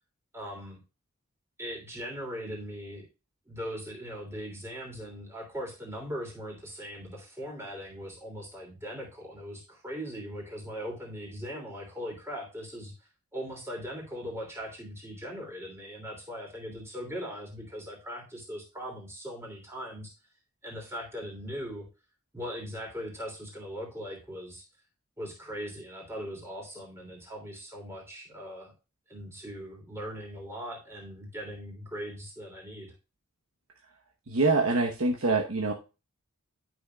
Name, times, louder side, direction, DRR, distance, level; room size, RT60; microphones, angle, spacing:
voice 1, 0.3-0.8 1.6-3.1 3.5-20.1 20.6-21.9 22.3-24.6 25.2-28.7 29.1-32.9, equal, 10° right, 0 dB, 3.0 m, -40 dB
voice 2, 34.3-35.7, right 3 dB, 70° right, 2 dB, 1.1 m, -25 dB
11.5 x 6.3 x 2.3 m, 0.30 s
head